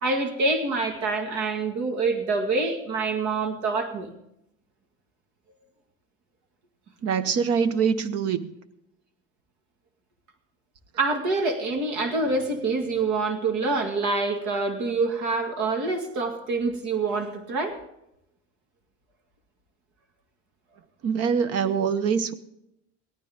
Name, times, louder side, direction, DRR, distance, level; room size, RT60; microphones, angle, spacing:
voice 1, 0.0-4.1 11.0-17.8, right 3 dB, 75° right, 4 dB, 2.3 m, -26 dB
voice 2, 7.0-8.5 21.0-22.3, right 6 dB, 55° right, 13 dB, 1.0 m, -24 dB
17.5 x 12.5 x 3.6 m, 0.81 s
cardioid pair, 145°, 29 cm